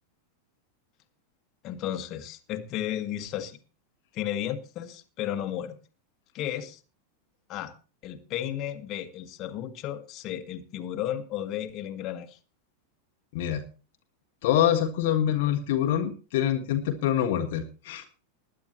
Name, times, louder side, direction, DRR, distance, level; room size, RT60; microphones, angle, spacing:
voice 1, 1.6-3.6 4.1-5.8 6.3-6.8 7.5-7.7 8.0-12.4, left 11 dB, 35° left, 6 dB, 1.7 m, -33 dB
voice 2, 14.4-18.1, left 10 dB, 50° left, 4 dB, 1.4 m, -25 dB
20.5 x 10.0 x 2.9 m, 0.34 s
figure-of-eight pair, 90°, 0 cm